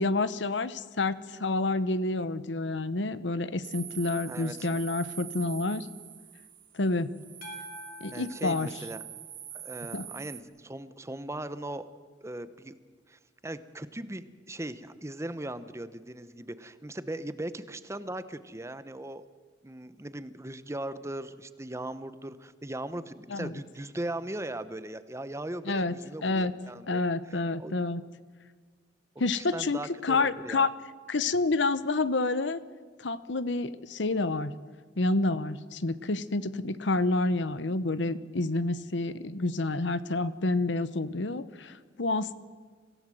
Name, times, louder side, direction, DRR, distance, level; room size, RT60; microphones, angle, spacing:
voice 1, 0.0-5.9 6.7-7.1 8.0-8.7 9.9-10.1 23.3-23.5 25.7-25.9 26.2-26.5 26.9-28.0 29.2-30.7 31.1-32.6 33.0-34.5 35.0-42.3, left 2 dB, 75° left, 15 dB, 0.9 m, -28 dB
sound 1, 3.6-10.4, right 11 dB, 50° right, 1.4 m, -44 dB
voice 2, 4.3-4.7 8.1-9.0 9.5-11.9 12.2-12.8 13.1-19.2 19.6-27.7 29.3-30.7, right 1 dB, 15° right, 13 dB, 0.8 m, -39 dB
sound 2, 7.4-9.8, left 1 dB, 55° left, 4.4 m, -48 dB
25.5 x 16.5 x 7.7 m, 1.5 s
head